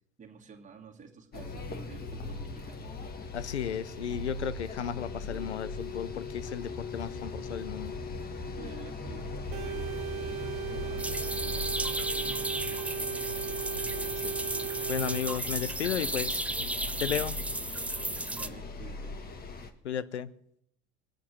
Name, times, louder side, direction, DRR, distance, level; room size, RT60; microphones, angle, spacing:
voice 1, 0.2-3.0 8.5-13.8 18.3-19.2, right 5 dB, 20° right, 1 dB, 2.4 m, -51 dB
sound 1, 1.3-19.7, left 3 dB, 25° left, 1.8 m, -39 dB
voice 2, 3.3-7.9 14.2-14.4 14.9-16.7 17.0-17.4 19.8-20.3, left 8 dB, 80° left, 16 dB, 0.8 m, -34 dB
sound 2, 9.5-15.2, right 9 dB, 40° right, 1.9 m, -37 dB
sound 3, 11.0-18.5, right 2 dB, 5° right, 0.6 m, -34 dB
22.0 x 8.4 x 6.2 m, 0.72 s
figure-of-eight pair, 80°, 34 cm